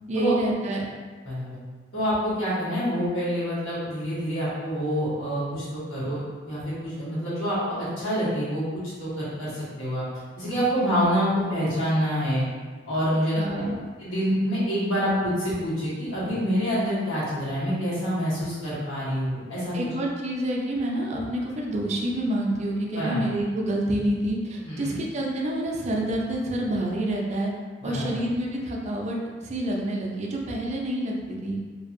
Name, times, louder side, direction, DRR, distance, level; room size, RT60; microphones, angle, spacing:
voice 1, 0.1-0.9 13.4-13.8 19.7-27.5 27.8-31.6, right 1 dB, 35° right, -1 dB, 0.4 m, -28 dB
voice 2, 1.2-1.6 1.9-10.0 10.4-12.4 12.9-13.6 14.0-19.8 23.0-23.2 24.6-25.0 27.8-28.0, equal, 80° left, -11 dB, 1.4 m, -27 dB
2.7 x 2.5 x 2.5 m, 1.5 s
head